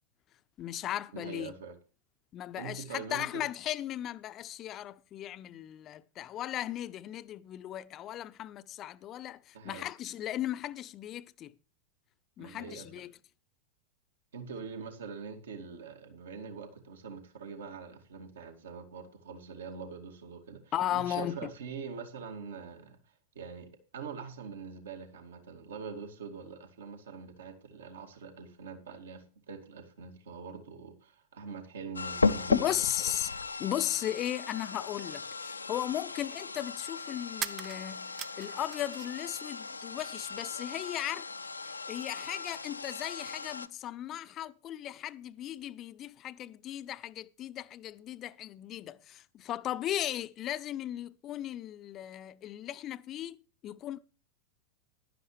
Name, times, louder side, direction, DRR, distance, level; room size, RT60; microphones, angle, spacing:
voice 1, 0.6-1.5 2.3-11.5 12.4-13.1 20.7-21.5 32.5-33.3 33.6-41.3 41.6-53.4 53.6-54.0, left 12 dB, 30° left, 0.7 m, -36 dB
voice 2, 1.1-1.8 2.6-3.4 9.5-9.9 12.4-12.9 14.3-23.0 23.3-33.1, right 5 dB, 65° right, 2.3 m, -44 dB
sound 1, 32.0-43.7, left 4 dB, 80° left, 0.7 m, -36 dB
sound 2, 37.3-39.3 39.6-40.4, right 9 dB, 30° right, 0.6 m, -42 dB
15.5 x 11.5 x 3.2 m
figure-of-eight pair, 90°, 0 cm